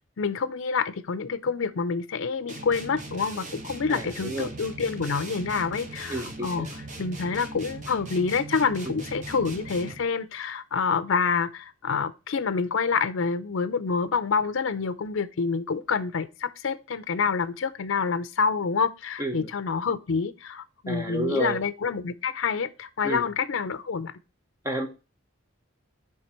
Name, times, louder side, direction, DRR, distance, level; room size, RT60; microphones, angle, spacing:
voice 1, 0.2-6.7 7.0-24.1, left 5 dB, 75° left, 0.5 m, -27 dB
sound 1, 2.5-10.1, right 2 dB, 35° right, 1.4 m, -39 dB
voice 2, 3.9-4.5 6.1-6.7 8.9-9.0 19.2-19.5 20.9-21.6 23.0-23.2 24.6-24.9, right 1 dB, 15° right, 1.3 m, -30 dB
9.6 x 3.3 x 4.3 m
head